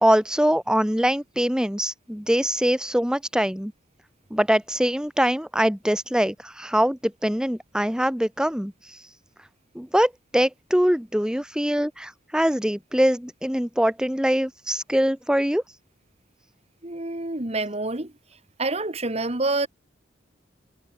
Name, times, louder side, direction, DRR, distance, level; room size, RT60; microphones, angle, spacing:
voice 1, 0.0-3.7 4.3-8.7 9.7-15.6, equal, 5° right, 1.2 m, -23 dB
voice 2, 16.8-18.1 18.6-19.7, right 2 dB, 35° right, 1.9 m, -27 dB
head